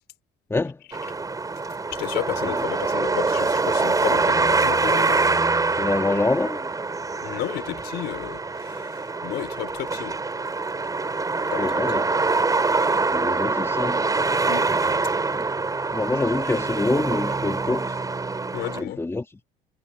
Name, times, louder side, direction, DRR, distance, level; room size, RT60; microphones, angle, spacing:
voice 1, 0.5-0.8 2.4-2.6 5.8-6.7 11.6-12.2 13.1-14.0 15.3-15.5 15.9-18.0 18.8-19.2, left 2 dB, 15° left, 2.7 m, -26 dB
sound 1, 0.9-18.8, right 3 dB, 20° right, 5.5 m, -24 dB
voice 2, 1.9-5.4 7.2-10.2 11.5-11.9 14.5-14.9 18.5-19.0, left 14 dB, 75° left, 5.4 m, -33 dB
cardioid pair, 110°, 17 cm